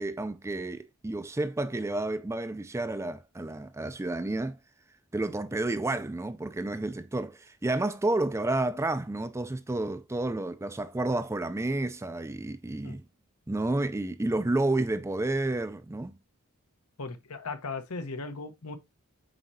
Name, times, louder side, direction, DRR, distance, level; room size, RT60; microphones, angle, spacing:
voice 1, 0.0-4.6 5.1-13.0 13.5-16.2, right 2 dB, 10° right, 0.4 m, -30 dB
voice 2, 17.0-18.8, left 3 dB, 80° left, 1.0 m, -37 dB
8.0 x 4.3 x 2.7 m
head